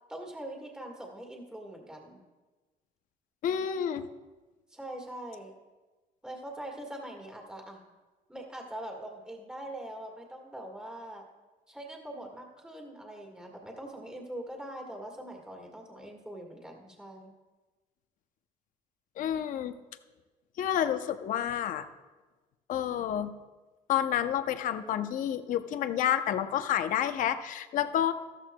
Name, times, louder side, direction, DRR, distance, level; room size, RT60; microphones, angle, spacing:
voice 1, 0.1-2.2 4.7-5.5 6.2-7.8 8.3-11.3 11.7-17.3, right 1 dB, 5° right, 0 dB, 1.7 m, -43 dB
voice 2, 3.4-4.1 19.2-19.7 20.6-21.9 22.7-23.3 23.9-28.1, left 10 dB, 60° left, 10 dB, 0.7 m, -29 dB
13.5 x 13.5 x 2.2 m, 1.2 s
cardioid pair, 135°, 15 cm